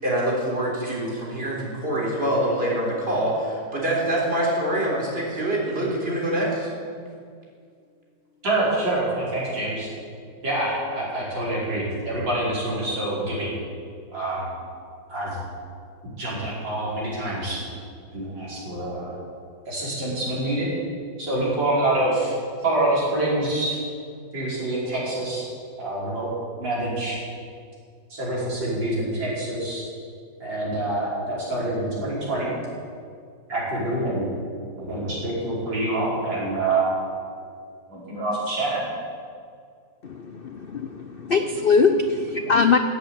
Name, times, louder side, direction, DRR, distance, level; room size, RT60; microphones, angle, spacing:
voice 1, 0.0-6.7, right 1 dB, 30° right, -4 dB, 4.0 m, -25 dB
voice 2, 8.4-9.9 10.4-13.5 14.1-14.5 15.1-15.4 16.2-17.6 18.1-19.1 19.7-20.7 21.2-22.3 22.6-23.8 24.3-25.5 25.8-26.3 26.6-27.2 28.1-29.8 30.4-32.5 33.5-34.3 34.8-36.9 37.9-38.8, right 2 dB, 90° right, -7 dB, 6.0 m, -26 dB
voice 3, 40.0-42.8, left 4 dB, 75° left, 7 dB, 0.5 m, -21 dB
15.5 x 8.2 x 8.9 m, 2.2 s
omnidirectional pair, 1.9 m